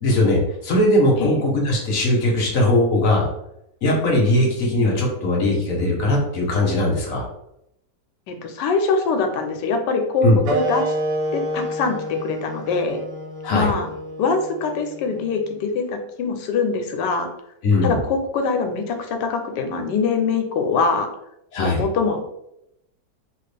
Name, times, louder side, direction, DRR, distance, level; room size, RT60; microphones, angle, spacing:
voice 1, 0.0-3.3 3.8-7.3 10.2-10.4 13.4-13.7 17.6-18.0 21.5-21.8, left 1 dB, 60° left, -1 dB, 1.1 m, -19 dB
voice 2, 8.3-10.9 11.3-13.0 13.5-13.9 14.2-17.3 17.8-21.1 21.6-22.3, left 4 dB, 80° left, 5 dB, 1.2 m, -23 dB
sound 1, 10.4-15.6, right 1 dB, 85° right, 1.3 m, -29 dB
3.2 x 2.4 x 3.2 m, 0.80 s
omnidirectional pair, 1.9 m